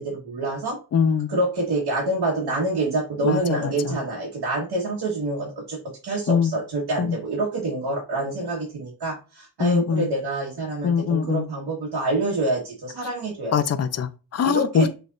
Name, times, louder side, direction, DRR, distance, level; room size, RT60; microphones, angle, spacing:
voice 1, 0.0-0.8 1.3-5.8 6.0-13.6 14.4-14.9, right 2 dB, 90° right, 1.5 m, -26 dB
voice 2, 0.9-1.3 3.2-3.4 6.3-6.5 7.0-7.2 9.6-10.0 10.8-11.4 13.5-14.9, left 7 dB, 40° left, 0.5 m, -22 dB
6.3 x 3.3 x 2.4 m
wide cardioid pair, 90°, 39 cm